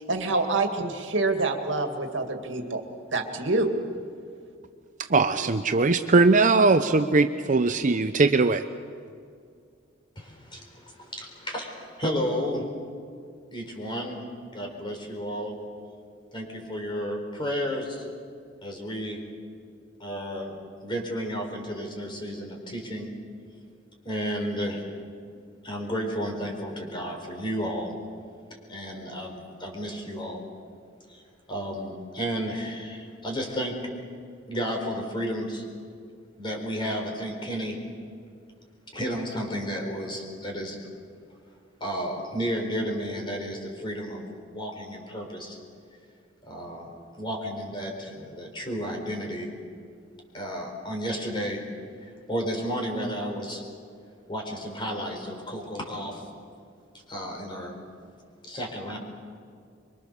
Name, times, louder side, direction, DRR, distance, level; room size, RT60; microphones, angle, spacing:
voice 1, 0.0-2.8 3.1-3.7, right 2 dB, 70° right, 4 dB, 2.2 m, -26 dB
voice 2, 5.1-8.6, right 3 dB, 40° right, 9 dB, 0.7 m, -20 dB
voice 3, 10.2-12.7 13.5-14.2 14.5-15.6 16.3-18.0 18.6-19.2 20.0-23.1 24.0-24.9 25.6-27.9 28.7-30.4 31.1-31.2 31.5-33.8 34.5-35.7 36.4-37.8 38.9-40.8 41.8-44.2 44.5-45.6 46.4-46.9 47.2-49.5 50.3-51.6 52.3-53.6 54.3-56.2 57.1-57.8 58.4-59.0, equal, 25° left, 2 dB, 4.5 m, -32 dB
25.5 x 23.5 x 6.9 m, 2.3 s
head